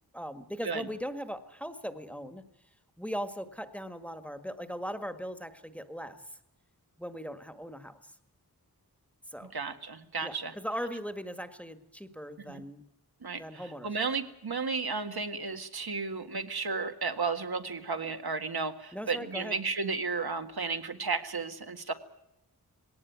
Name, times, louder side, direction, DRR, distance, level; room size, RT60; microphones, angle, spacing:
voice 1, 0.1-2.4 3.0-6.2 7.0-8.0 9.3-9.5 10.2-12.8 13.4-13.9 18.9-19.6, equal, 5° left, 9 dB, 1.7 m, -39 dB
voice 2, 9.4-10.5 12.5-12.6 13.2-21.9, right 4 dB, 75° right, 7 dB, 1.9 m, -33 dB
20.5 x 18.0 x 9.5 m, 0.83 s
wide cardioid pair, 80°, 37 cm